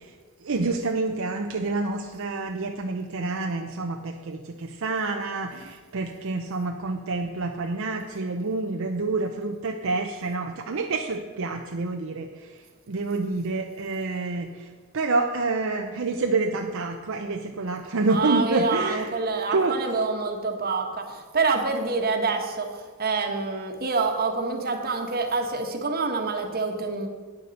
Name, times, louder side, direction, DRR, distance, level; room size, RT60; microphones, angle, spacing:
voice 1, 0.4-12.3 12.9-14.7 14.9-19.1 19.5-19.7, right 3 dB, 65° right, 3 dB, 0.7 m, -28 dB
voice 2, 18.1-27.1, right 4 dB, 45° right, 4 dB, 1.3 m, -27 dB
9.6 x 6.8 x 6.5 m, 1.5 s
head